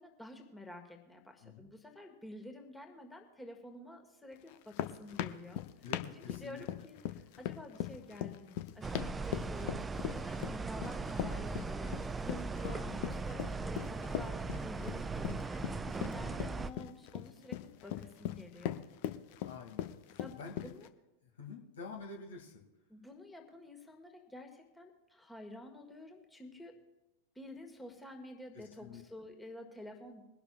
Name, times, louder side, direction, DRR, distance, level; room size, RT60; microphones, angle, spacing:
voice 1, 0.0-5.6 6.2-11.9 12.2-18.8 20.2-20.9 22.9-26.8 27.3-30.2, left 1 dB, 5° left, 3 dB, 1.7 m, -50 dB
sound 1, 4.5-20.9, left 12 dB, 45° left, 0.6 m, -40 dB
voice 2, 5.8-6.6 12.6-13.1 15.8-16.7 19.4-20.7 21.2-22.6 28.5-29.0, left 5 dB, 65° left, 2 dB, 2.2 m, -49 dB
sound 2, 8.8-16.7, right 4 dB, 15° right, 0.4 m, -39 dB
22.5 x 12.0 x 2.4 m, 1.0 s
figure-of-eight pair, 90°, 0 cm